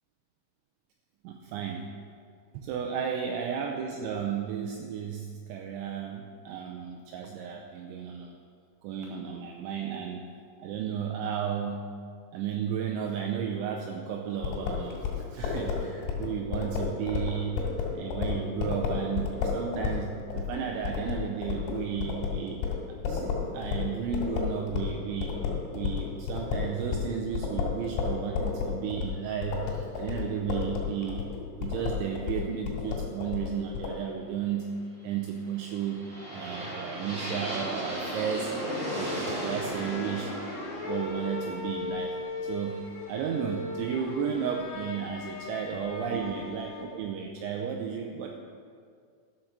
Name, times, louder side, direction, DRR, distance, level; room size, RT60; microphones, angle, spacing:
voice 1, 1.2-1.9 2.5-8.4 8.8-10.2 10.6-11.8 12.3-17.6 17.9-22.6 22.9-25.4 25.7-31.3 31.6-34.7 35.0-36.1 36.3-38.5 38.9-40.3 40.8-42.1 42.5-42.8 43.1-48.3, right 7 dB, 90° right, 2 dB, 2.6 m, -33 dB
sound 1, 14.4-25.0 25.2-34.0, left 6 dB, 90° left, 4.6 m, -31 dB
sound 2, 35.4-43.4, equal, 25° right, 1.5 m, -36 dB
sound 3, 39.6-47.1, left 3 dB, 75° left, 3.9 m, -38 dB
12.5 x 5.9 x 6.5 m, 2.2 s
omnidirectional pair, 6.0 m